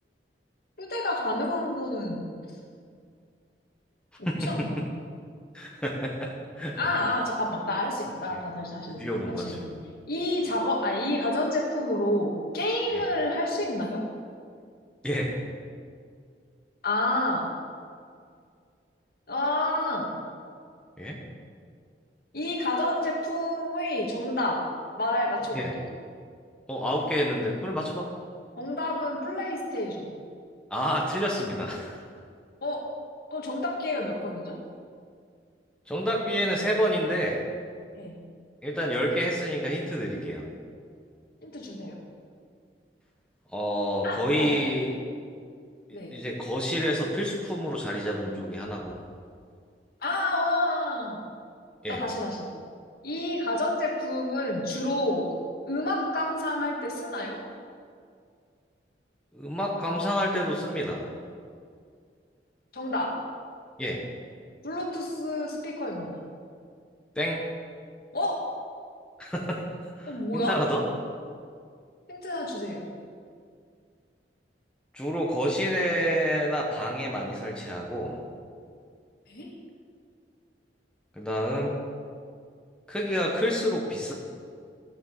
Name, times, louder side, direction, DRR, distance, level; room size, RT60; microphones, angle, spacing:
voice 1, 0.8-2.3 4.2-4.8 6.8-9.7 10.1-14.0 16.8-17.5 19.3-20.1 22.3-24.6 25.0-25.8 28.6-30.1 32.6-32.9 33.3-34.6 38.0-38.2 41.4-41.9 44.0-44.6 45.9-46.2 50.0-51.2 51.9-52.5 53.0-55.3 55.7-57.4 62.7-63.1 64.6-66.2 68.1-68.4 70.1-70.6 72.1-72.9 79.3-79.5, left 1 dB, 60° left, -1 dB, 2.1 m, -29 dB
voice 2, 4.2-4.8 5.5-6.8 9.0-9.8 12.9-13.1 15.0-15.4 21.0-21.2 25.5-25.7 26.7-28.1 30.7-32.0 35.9-37.4 38.6-40.4 43.5-44.9 45.9-49.0 51.8-52.0 59.3-61.0 63.8-64.0 67.1-67.4 69.2-69.6 70.0-70.8 74.9-78.2 81.2-81.8 82.9-84.1, equal, 5° left, -3 dB, 1.3 m, -28 dB
12.0 x 6.8 x 7.4 m, 2.2 s
head